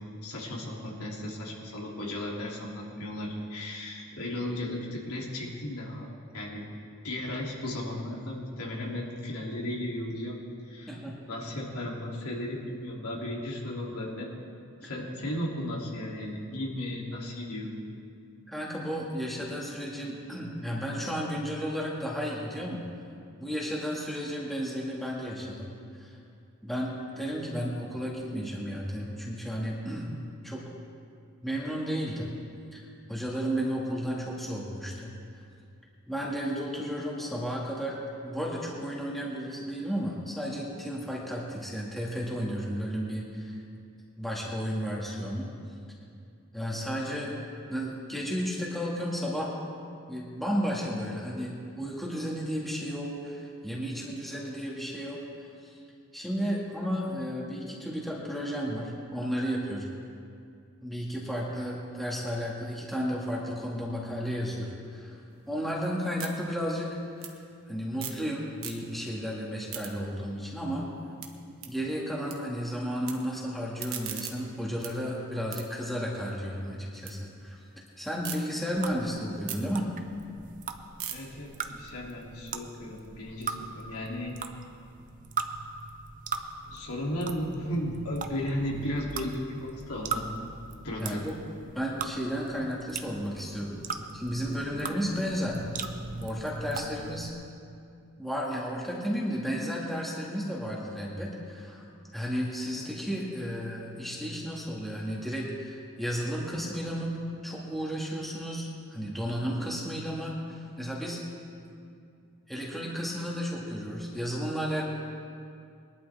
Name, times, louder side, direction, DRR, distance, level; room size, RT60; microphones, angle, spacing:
voice 1, 0.2-6.1 6.3-6.6 7.0-10.4 10.7-11.0 11.3-14.3 14.8-17.7 81.1-84.3 86.7-90.2 90.8-91.3, left 1 dB, 85° left, -3 dB, 2.9 m, -35 dB
voice 2, 10.9-11.2 18.5-22.8 23.4-25.7 26.0-26.1 26.6-30.2 30.4-30.6 31.4-32.3 32.7-32.8 33.1-35.1 36.1-38.0 38.2-43.6 44.2-45.5 46.5-47.4 47.7-49.5 50.1-55.2 56.1-59.9 60.8-65.2 65.5-67.0 67.7-70.9 71.7-77.6 78.0-79.9 91.0-91.3 91.7-93.8 94.1-95.6 96.2-97.3 98.2-101.8 102.1-107.2 107.4-111.2 112.5-114.8, equal, ahead, -4 dB, 1.8 m, -33 dB
sound 1, 65.3-68.3 68.5-69.2 69.5-72.4 72.6-73.1 73.5-77.1 77.5-78.4 78.8-83.0, right 9 dB, 65° right, 1.3 m, -43 dB
sound 2, 78.8-97.3, right 5 dB, 35° right, 0.6 m, -40 dB
21.5 x 12.0 x 3.5 m, 2.4 s
head